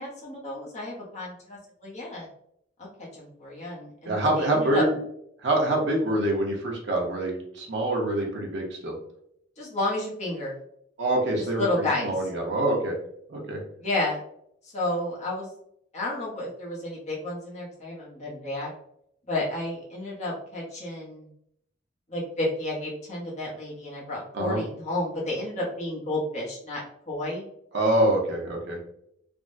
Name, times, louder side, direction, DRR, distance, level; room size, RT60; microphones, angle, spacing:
voice 1, 0.0-2.3 2.8-2.9 3.1-4.8 9.6-10.5 11.6-12.1 13.8-14.2 14.6-15.5 15.9-18.7 19.3-21.3 22.1-27.4, left 1 dB, 35° left, -5 dB, 0.8 m, -31 dB
voice 2, 4.0-4.8 5.4-8.9 11.0-11.6 12.0-12.9 13.3-13.6 24.3-24.6 27.7-28.8, right 1 dB, 60° right, -1 dB, 0.8 m, -25 dB
3.4 x 2.1 x 2.6 m, 0.73 s
head